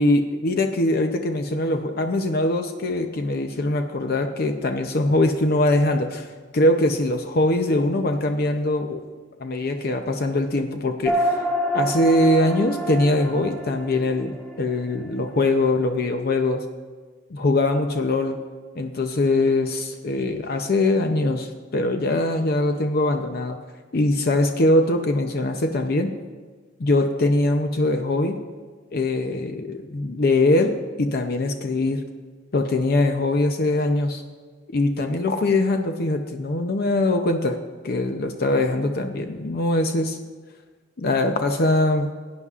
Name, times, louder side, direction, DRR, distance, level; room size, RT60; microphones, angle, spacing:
voice 1, 0.0-9.0 9.4-11.4 11.7-16.6 17.3-18.4 18.7-23.6 23.9-26.1 26.8-28.4 28.9-30.7 31.0-32.0 32.5-34.2 34.7-37.6 37.8-40.2 41.0-42.1, left 2 dB, 55° left, 6 dB, 0.6 m, -22 dB
sound 1, 11.0-15.8, right 1 dB, ahead, 1.7 m, -27 dB
17.5 x 9.6 x 2.4 m, 1.5 s
head